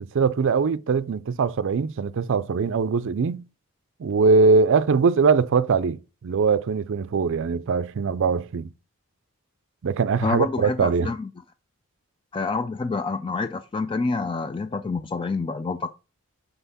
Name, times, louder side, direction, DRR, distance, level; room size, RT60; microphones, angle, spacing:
voice 1, 0.0-3.4 4.0-8.7 9.8-11.1, right 4 dB, 60° right, 0.4 m, -22 dB
voice 2, 10.2-11.3 12.3-15.9, left 4 dB, 20° left, 0.3 m, -27 dB
5.8 x 5.7 x 4.1 m
head